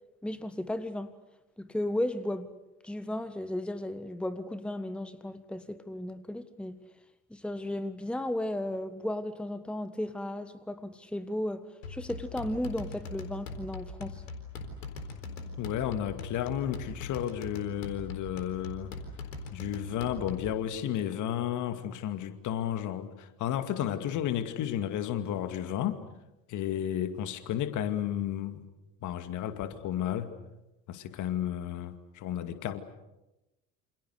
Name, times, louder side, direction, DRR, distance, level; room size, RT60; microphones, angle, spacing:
voice 1, 0.2-1.1 1.6-2.5 2.8-6.8 7.3-14.2, left 1 dB, 5° left, 13 dB, 1.4 m, -35 dB
sound 1, 11.8-20.6, left 3 dB, 75° left, 4.2 m, -41 dB
voice 2, 15.6-18.9 19.5-26.0 26.5-28.7 29.0-30.3 30.9-32.8, left 10 dB, 50° left, 9 dB, 2.4 m, -32 dB
28.5 x 27.5 x 6.7 m, 0.99 s
figure-of-eight pair, 65°, 39 cm